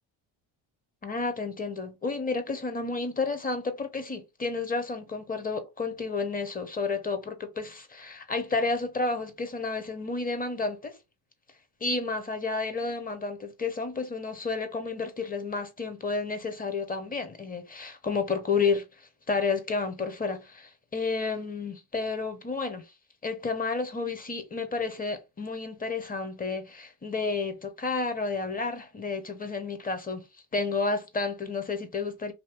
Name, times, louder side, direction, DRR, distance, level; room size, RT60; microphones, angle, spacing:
voice 1, 1.0-11.0 11.8-18.9 19.3-22.8 23.2-30.3 30.5-32.3, left 4 dB, 20° left, 0.8 m, -31 dB
2.8 x 2.7 x 3.4 m
supercardioid pair, 95°, 47 cm